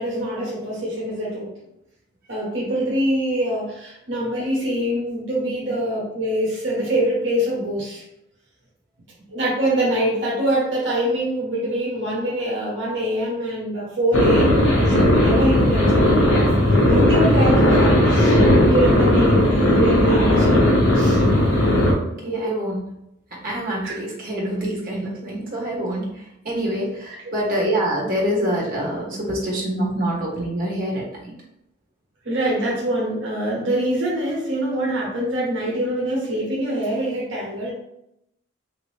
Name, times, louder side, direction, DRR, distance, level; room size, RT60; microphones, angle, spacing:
voice 1, 0.0-1.5 2.3-8.0 9.3-16.4 16.9-18.4 18.7-20.5 20.9-21.2 22.2-22.5 23.8-23.9 32.2-37.7, right 1 dB, 70° right, -5 dB, 1.0 m, -24 dB
sound 1, 14.1-21.9, left 1 dB, 70° left, 0.9 m, -16 dB
voice 2, 22.0-22.9 23.3-31.3, right 1 dB, 45° right, -3 dB, 1.2 m, -26 dB
3.6 x 2.8 x 3.2 m, 0.82 s
head